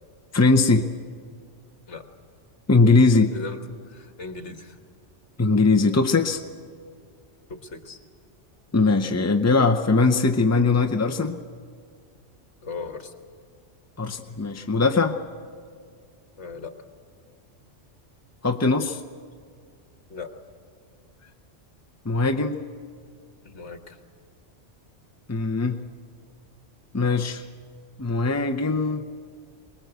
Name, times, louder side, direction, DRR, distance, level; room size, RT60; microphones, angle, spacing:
voice 1, 0.3-0.9 2.7-3.3 5.4-6.4 8.7-11.4 14.0-15.2 18.4-19.0 22.1-22.6 25.3-25.8 26.9-27.4 28.0-29.0, left 3 dB, 20° left, 4 dB, 0.4 m, -20 dB
voice 2, 3.9-4.7 7.5-8.0 12.6-13.1 16.4-16.7 20.1-20.3 23.4-24.0, left 4 dB, 70° left, 6 dB, 1.8 m, -37 dB
23.0 x 21.0 x 8.1 m, 2.2 s
omnidirectional pair, 1.2 m